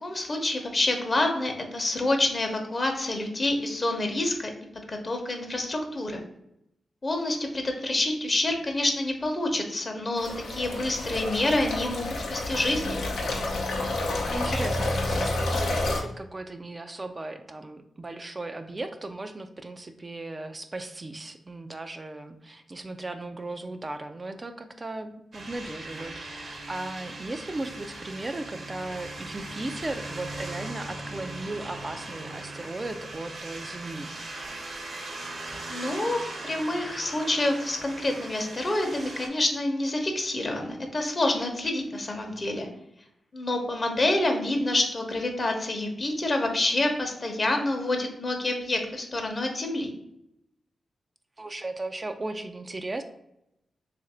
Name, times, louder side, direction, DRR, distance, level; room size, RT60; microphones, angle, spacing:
voice 1, 0.0-4.5 4.9-6.2 7.0-13.0 35.7-42.7 43.3-49.9, left 2 dB, 40° left, 4 dB, 0.8 m, -27 dB
sound 1, 10.2-16.0, left 2 dB, 90° left, 0.7 m, -29 dB
voice 2, 14.2-34.1 51.4-53.0, right 2 dB, 35° right, 7 dB, 0.4 m, -36 dB
sound 2, 25.3-39.3, right 2 dB, 65° right, 1.0 m, -39 dB
3.1 x 2.5 x 4.2 m, 0.81 s
cardioid pair, 50°, 0 cm